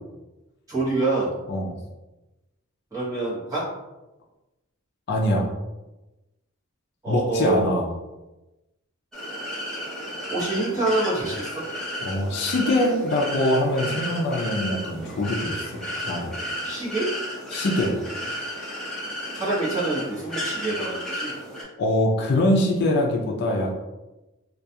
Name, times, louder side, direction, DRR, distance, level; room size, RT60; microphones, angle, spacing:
voice 1, 0.7-1.3 2.9-3.7 7.0-7.8 10.3-11.6 16.6-17.2 19.3-21.3, right 2 dB, 15° right, -8 dB, 0.9 m, -26 dB
voice 2, 5.1-5.5 7.1-7.9 12.0-16.3 17.5-18.0 21.8-23.7, left 1 dB, 50° left, 0 dB, 0.4 m, -23 dB
sound 1, 9.1-21.6, equal, 5° left, 0.6 m, -33 dB
2.3 x 2.3 x 2.7 m, 1.0 s
head